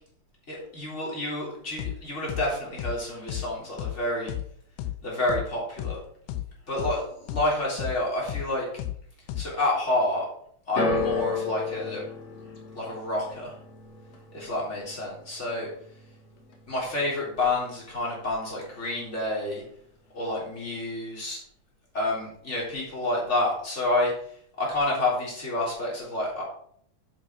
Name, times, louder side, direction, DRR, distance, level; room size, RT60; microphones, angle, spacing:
voice 1, 0.5-4.3 5.0-6.0 6.7-8.7 9.3-10.3 10.7-12.0 12.7-13.5 14.3-15.7 16.7-19.6 20.1-21.4 21.9-24.1 24.6-26.4, left 2 dB, 15° left, -4 dB, 3.5 m, -29 dB
friend me kick, 1.8-2.0 2.3-2.5 2.8-3.0 3.3-3.5 3.8-4.0 4.3-4.5 4.8-5.0 5.3-5.5 5.8-6.0 6.3-6.5 6.8-7.0 7.3-7.5 7.8-8.0 8.3-8.5 8.8-9.0 9.3-9.5, left 13 dB, 85° left, 2.7 m, -32 dB
sound 1, 10.8-17.0 17.3-18.0 18.7-18.8, left 3 dB, 60° left, 1.8 m, -34 dB
8.6 x 7.5 x 4.6 m, 0.63 s
omnidirectional pair, 4.8 m